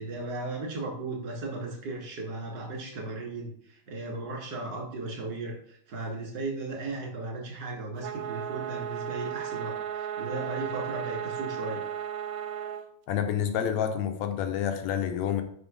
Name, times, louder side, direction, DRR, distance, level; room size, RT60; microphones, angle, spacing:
voice 1, 0.0-11.8, right 2 dB, 40° right, -1 dB, 2.1 m, -36 dB
sound 1, 8.0-12.9, right 9 dB, 80° right, 1.9 m, -35 dB
voice 2, 13.1-15.4, left 9 dB, 80° left, 7 dB, 1.8 m, -28 dB
5.7 x 5.0 x 3.7 m, 0.63 s
omnidirectional pair, 3.4 m